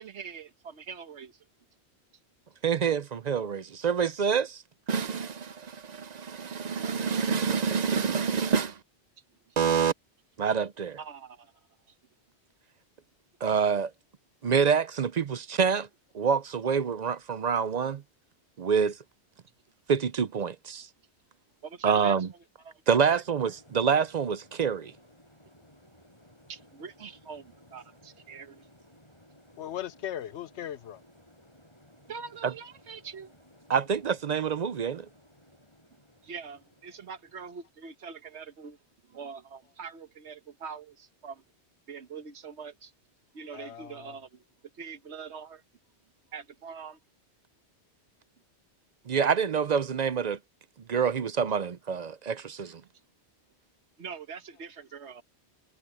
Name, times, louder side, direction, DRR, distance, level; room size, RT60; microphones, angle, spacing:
voice 1, 0.0-1.4 6.5-6.6 9.5-9.6 11.0-11.5 21.6-22.2 22.6-23.2 26.5-28.7 32.1-33.3 36.2-38.8 39.0-41.4 41.9-42.9 43.3-44.4 44.7-45.6 46.3-47.0 52.8-52.9 54.0-55.2, right 6 dB, 80° right, 1.4 m, -43 dB
voice 2, 2.6-4.6 4.9-8.8 9.6-9.9 10.4-11.0 13.4-13.9 14.4-15.9 16.1-18.0 18.6-19.0 19.9-20.9 21.8-22.3 22.9-24.9 32.4-32.5 33.7-35.1 49.1-50.4 50.9-52.8, right 6 dB, 50° right, 0.6 m, -27 dB
sound 1, 23.2-37.9, left 1 dB, 25° left, 7.5 m, -58 dB
voice 3, 29.6-31.0 43.5-44.1, left 11 dB, 80° left, 1.0 m, -38 dB
omnidirectional pair, 1.1 m